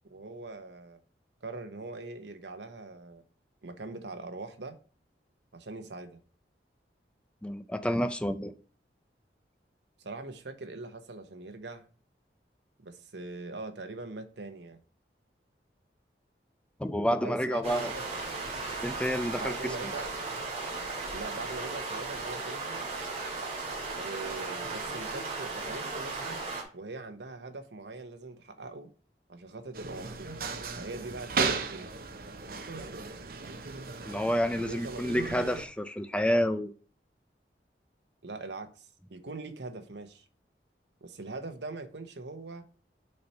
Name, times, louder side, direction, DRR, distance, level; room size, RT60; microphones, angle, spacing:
voice 1, 0.0-1.0 1.4-3.2 3.6-4.8 5.5-6.2 10.0-11.9 12.8-14.8 17.2-18.3 19.4-20.3 21.1-22.9 23.9-26.4 26.7-28.9 29.3-30.3 30.8-31.9 34.6-35.0 38.2-40.2 41.0-42.6, right 3 dB, 80° right, 1.0 m, -42 dB
voice 2, 7.4-8.5 16.8-17.9 18.8-19.7 34.1-36.7, equal, 5° left, 0.5 m, -29 dB
sound 1, 17.6-26.6, right 3 dB, 35° right, 2.5 m, -36 dB
sound 2, 29.7-35.6, right 4 dB, 55° right, 0.8 m, -35 dB
6.5 x 4.3 x 5.6 m
head